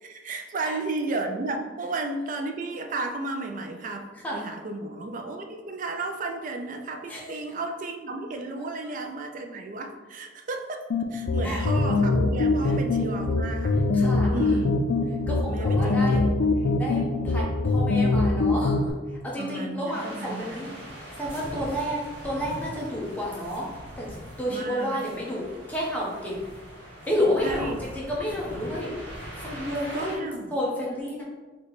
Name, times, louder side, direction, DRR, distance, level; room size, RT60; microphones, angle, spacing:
voice 1, 0.0-4.0 4.3-10.8 11.1-13.8 14.3-14.9 15.5-16.3 19.4-20.8 24.5-25.0 27.4-27.8 29.9-30.5, right 2 dB, 45° right, 5 dB, 0.4 m, -33 dB
sound 1, 10.9-18.9, left 2 dB, 60° left, 0.3 m, -23 dB
voice 2, 13.9-14.6 15.3-16.2 16.8-18.8 19.2-20.7 21.2-23.7 24.0-26.4 27.1-29.0 29.4-31.2, equal, 10° left, -5 dB, 0.9 m, -30 dB
sound 2, 19.9-30.2, equal, 75° right, 1.1 m, -41 dB
3.2 x 3.0 x 4.0 m, 1.3 s
head